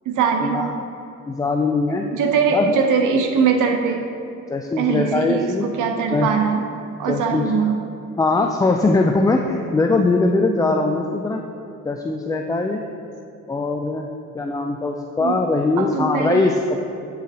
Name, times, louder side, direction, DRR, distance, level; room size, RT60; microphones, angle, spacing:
voice 1, 0.1-0.7 2.1-4.1 4.8-6.6 7.0-7.7 15.2-15.4 15.8-16.5, right 6 dB, 85° right, 4 dB, 0.8 m, -21 dB
voice 2, 1.3-2.1 2.5-2.7 4.5-5.7 6.1-6.3 7.1-7.5 8.2-11.4 11.8-12.8 13.5-14.1 14.3-16.8, left 3 dB, 15° left, 3 dB, 0.3 m, -21 dB
8.4 x 4.0 x 4.2 m, 2.8 s
cardioid pair, 90°, 30 cm